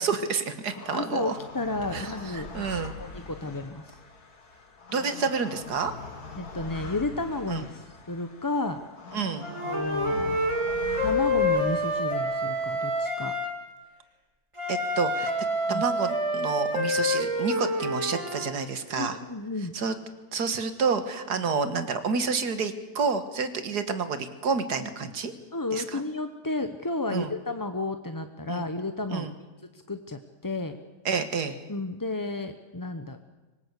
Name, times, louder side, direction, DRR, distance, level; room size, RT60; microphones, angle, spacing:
voice 1, 0.0-1.4 1.9-2.9 4.9-5.9 7.5-7.7 9.1-9.5 14.7-15.3 15.7-19.2 19.7-20.0 20.3-25.3 25.7-26.0 27.1-27.3 28.5-28.6 29.1-29.3 31.1-31.6, right 5 dB, 85° right, 10 dB, 2.1 m, -29 dB
sound 1, 0.7-13.1, left 4 dB, 75° left, 2.6 m, -43 dB
voice 2, 0.9-2.5 2.8-4.0 6.4-8.8 9.7-10.4 11.0-13.3 15.7-15.8 18.9-19.7 21.3-21.4 25.5-29.3 29.7-30.8 31.7-33.2, left 2 dB, 20° left, 7 dB, 0.7 m, -32 dB
Wind instrument woodwind instrument, 9.4-13.6 14.6-18.5, left 1 dB, 20° right, 3.3 m, -27 dB
25.0 x 19.5 x 8.2 m, 1.2 s
omnidirectional pair, 1.7 m